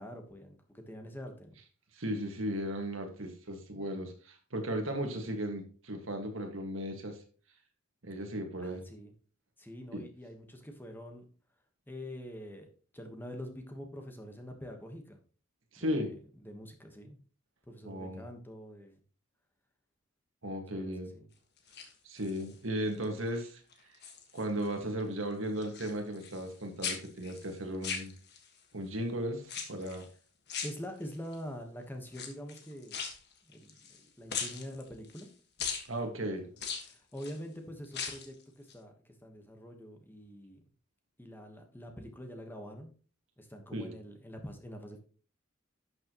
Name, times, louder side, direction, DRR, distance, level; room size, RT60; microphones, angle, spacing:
voice 1, 0.0-1.5 8.6-9.1 9.6-11.3 11.9-12.7 12.9-15.2 15.8-16.1 16.4-17.2 17.7-19.0 20.7-21.2 30.6-33.0 33.4-35.3 36.2-36.3 36.8-40.6 41.2-42.9 43.4-45.0, equal, 10° left, 4 dB, 1.2 m, -45 dB
voice 2, 1.9-7.2 8.0-8.9 9.9-10.0 15.7-16.1 17.8-18.2 20.4-21.1 22.0-23.6 24.3-28.1 28.7-30.0 35.9-36.5 43.7-43.9, equal, 65° right, 4 dB, 1.8 m, -36 dB
sound 1, 21.6-22.5 23.0-23.4 23.7-24.7 25.0-26.5 26.8-28.6 29.4-30.1 30.5-31.3 32.1-34.0 34.3-35.3 35.6-35.9 36.6-37.4 37.8-38.3 38.7-38.8, left 6 dB, 55° left, 1.5 m, -40 dB
11.5 x 6.5 x 3.0 m, 0.40 s
head